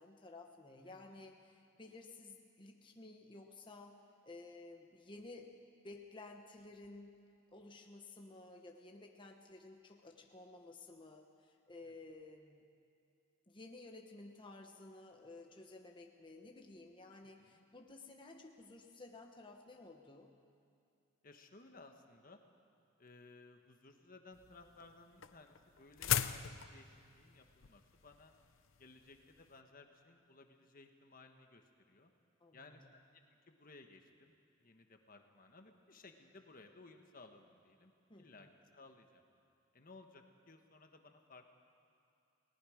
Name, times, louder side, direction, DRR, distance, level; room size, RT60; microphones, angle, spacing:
voice 1, 0.0-5.5 5.8-7.2 7.5-12.6 13.5-20.3 32.4-32.8 38.1-38.5, left 2 dB, 25° left, 1 dB, 1.2 m, -54 dB
voice 2, 0.9-1.2 11.8-11.9 17.4-17.6 21.2-22.4 23.0-28.3 28.8-32.1 32.5-33.0 33.5-34.3 34.6-37.9 38.2-38.5 38.7-39.2 39.7-41.4, left 3 dB, 45° left, 5 dB, 1.3 m, -59 dB
sound 1, 24.3-29.5, left 9 dB, 85° left, 0.7 m, -39 dB
30.0 x 19.0 x 5.1 m, 2.5 s
head